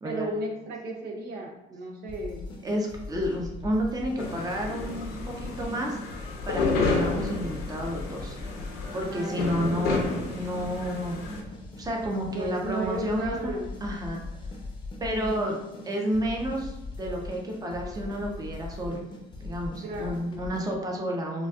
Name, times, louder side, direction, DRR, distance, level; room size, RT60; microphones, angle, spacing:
voice 1, 0.0-2.6 9.1-10.0 12.3-13.7 15.1-15.7 19.8-20.5, right 1 dB, 65° right, 1 dB, 0.6 m, -35 dB
sound 1, 2.1-20.7, left 2 dB, 25° left, 0.7 m, -40 dB
voice 2, 2.6-8.6 8.9-11.2 11.8-13.5 13.8-14.2 15.0-19.0 19.4-21.5, equal, 20° right, 0 dB, 0.7 m, -31 dB
sound 2, 4.2-11.4, left 3 dB, 85° left, 0.8 m, -31 dB
3.9 x 2.4 x 2.3 m, 0.98 s
cardioid pair, 110°, 17 cm